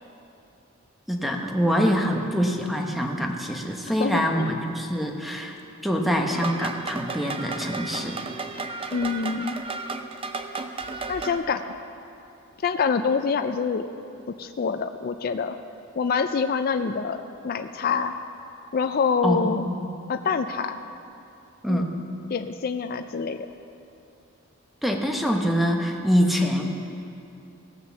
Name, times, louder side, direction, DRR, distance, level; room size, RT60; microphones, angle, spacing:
voice 1, 1.1-5.6 5.8-8.2 19.2-20.0 21.6-21.9 24.8-26.7, equal, ahead, 1 dB, 0.9 m, -25 dB
voice 2, 4.0-4.5 8.9-9.6 11.1-11.8 12.6-13.9 14.4-15.6 16.0-18.2 18.7-19.7 20.1-20.8 21.7-21.9 22.3-23.5, left 5 dB, 45° left, 8 dB, 0.4 m, -26 dB
sound 1, 6.3-11.4, right 3 dB, 25° right, 0.6 m, -33 dB
16.5 x 6.5 x 7.1 m, 2.7 s
head